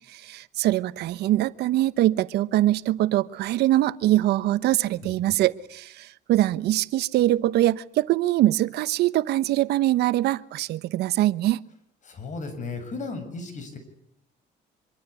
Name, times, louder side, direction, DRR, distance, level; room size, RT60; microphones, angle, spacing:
voice 1, 0.1-11.6, right 15 dB, 75° right, 15 dB, 1.0 m, -23 dB
voice 2, 5.0-5.3 12.0-13.8, left 3 dB, 45° left, 10 dB, 7.1 m, -35 dB
25.5 x 23.5 x 8.3 m, 0.75 s
cardioid pair, 110°, 17 cm